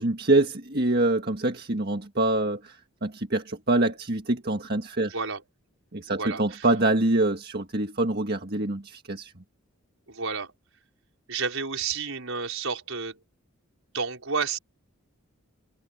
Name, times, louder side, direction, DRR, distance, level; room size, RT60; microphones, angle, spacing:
voice 1, 0.0-5.2 5.9-9.3, right 2 dB, 45° right, 1.7 m, -25 dB
voice 2, 5.1-5.4 6.1-6.7 10.1-10.5 11.3-13.2 13.9-14.6, right 5 dB, 75° right, 4.8 m, -31 dB
head